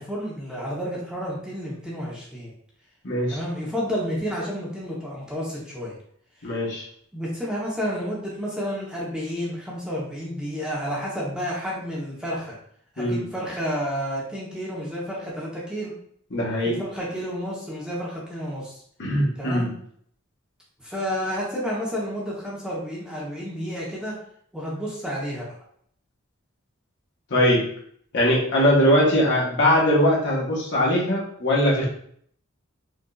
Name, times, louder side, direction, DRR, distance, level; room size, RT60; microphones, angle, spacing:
voice 1, 0.0-2.5 3.3-5.9 6.4-6.5 7.1-12.6 12.9-15.9 16.6-18.8 19.4-19.7 20.8-24.1 24.5-25.5, equal, 5° right, -5 dB, 0.9 m, -30 dB
voice 2, 3.0-3.4 6.4-6.8 13.0-13.2 16.3-16.7 19.0-19.7 27.3-27.6 28.1-31.8, equal, 60° left, -4 dB, 1.2 m, -21 dB
5.0 x 2.6 x 2.4 m, 0.63 s
head